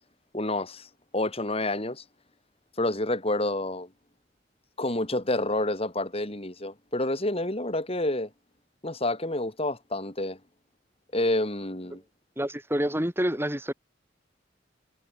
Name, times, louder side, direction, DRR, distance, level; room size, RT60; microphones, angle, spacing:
voice 1, 0.3-0.9 1.1-2.0 2.8-3.9 4.8-8.3 8.8-10.4 11.1-12.0, left 1 dB, 30° left, 4.1 m, -28 dB
voice 2, 12.4-13.7, equal, 15° right, 5.1 m, -27 dB
head